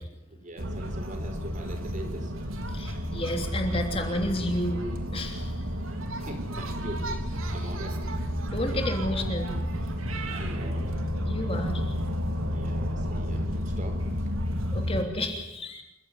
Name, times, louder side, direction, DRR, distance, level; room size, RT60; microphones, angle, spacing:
voice 1, 0.3-2.3 5.8-8.0 10.3-10.9 12.5-14.3, right 1 dB, 35° right, 5 dB, 4.9 m, -42 dB
sound 1, 0.6-15.0, equal, 80° right, 3.5 m, -31 dB
voice 2, 2.7-4.8 5.1-5.6 8.5-9.5 11.3-11.9 14.7-15.8, left 1 dB, 25° left, 3 dB, 3.2 m, -31 dB
28.0 x 16.0 x 9.8 m, 0.88 s
head